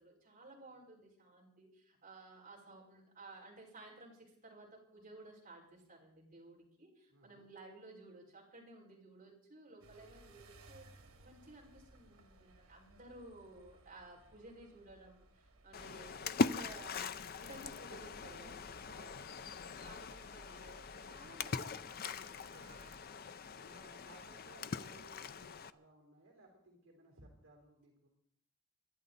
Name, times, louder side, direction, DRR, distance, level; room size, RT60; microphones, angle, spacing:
voice 1, 0.0-10.9 11.2-17.1 17.4-19.0 19.3-19.4 19.8-23.1, right 2 dB, 35° right, -5 dB, 5.4 m, -56 dB
voice 2, 7.1-7.5 18.9-19.5 23.6-28.1, right 2 dB, 65° right, 1 dB, 3.6 m, -61 dB
sound 1, 9.8-23.0, right 2 dB, 80° right, 2.9 m, -62 dB
Splash splatter, 15.7-25.7, left 4 dB, 45° left, 0.5 m, -41 dB
23.5 x 11.5 x 4.1 m, 0.71 s
head